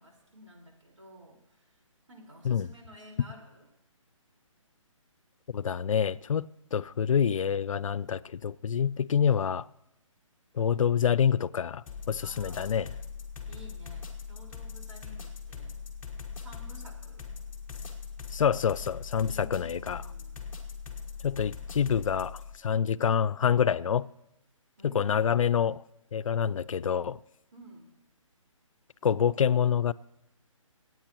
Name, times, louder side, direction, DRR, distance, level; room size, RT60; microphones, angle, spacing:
voice 1, 0.0-1.8 2.1-3.7 12.2-12.8 13.5-15.8 16.3-17.3 19.2-20.3 24.8-25.5 27.5-27.9, equal, 70° right, 4.6 m, -52 dB
voice 2, 5.5-9.7 10.5-12.9 18.3-20.0 21.2-24.1 24.8-25.8 26.1-27.2 29.0-29.9, left 8 dB, 75° left, 0.4 m, -27 dB
sound 1, 11.9-22.5, left 6 dB, 10° left, 1.3 m, -41 dB
26.0 x 9.2 x 3.0 m
hypercardioid pair, 165°, 17 cm